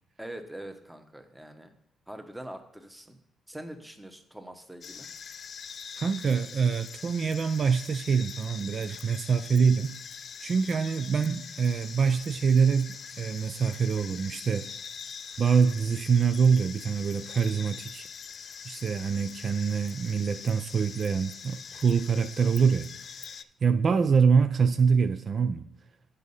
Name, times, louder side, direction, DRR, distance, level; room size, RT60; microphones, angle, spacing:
voice 1, 0.2-1.7 2.1-3.2 3.5-5.1, right 1 dB, 5° right, 1.0 m, -43 dB
sound 1, 4.8-23.4, left 7 dB, 50° left, 0.3 m, -43 dB
voice 2, 5.9-9.9 10.4-14.7 15.4-18.1 18.6-22.9 23.2-25.6, right 6 dB, 45° right, 0.4 m, -25 dB
8.1 x 5.2 x 5.4 m
cardioid pair, 90°, 0 cm